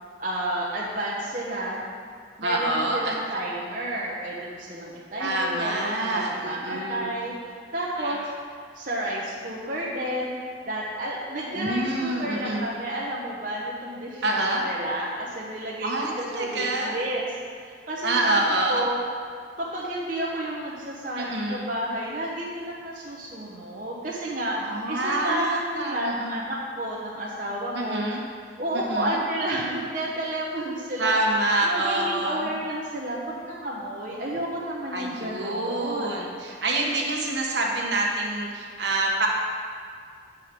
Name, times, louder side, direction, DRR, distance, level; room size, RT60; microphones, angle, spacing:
voice 1, 0.2-1.8 2.4-7.3 7.7-8.2 8.7-10.4 10.7-17.2 17.6-18.4 18.7-19.0 19.6-28.1 28.6-31.2 31.6-36.2, right 1 dB, 45° right, -5 dB, 0.9 m, -31 dB
voice 2, 2.4-3.2 5.2-7.1 8.0-8.2 11.5-12.7 14.2-14.7 15.8-17.0 18.0-18.8 21.2-21.6 24.6-26.4 27.7-28.2 28.7-29.2 31.0-32.5 34.9-39.3, right 2 dB, 65° right, -1 dB, 1.3 m, -27 dB
8.3 x 4.9 x 6.0 m, 2.1 s
head